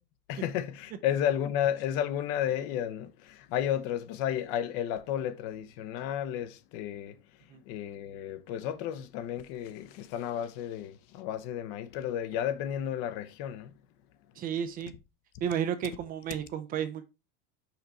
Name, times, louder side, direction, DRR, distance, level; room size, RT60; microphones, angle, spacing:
voice 1, 0.3-7.2 7.7-13.7, left 10 dB, 50° left, 0.8 m, -32 dB
voice 2, 14.4-14.9 15.4-17.0, right 9 dB, 25° right, 0.5 m, -32 dB
5.8 x 4.0 x 4.3 m
supercardioid pair, 160°, 32 cm